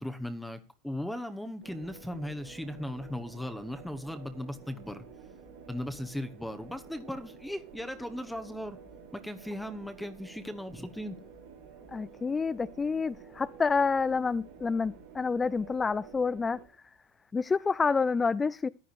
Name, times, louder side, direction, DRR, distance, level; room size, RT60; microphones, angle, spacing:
voice 1, 0.0-5.1 5.7-8.8 9.1-11.2, left 1 dB, ahead, 1.0 m, -37 dB
sound 1, 1.6-16.7, right 6 dB, 90° right, 4.5 m, -51 dB
voice 2, 11.9-16.6 17.3-18.7, left 4 dB, 20° left, 0.4 m, -28 dB
14.5 x 10.0 x 2.5 m
supercardioid pair, 105°, 0 cm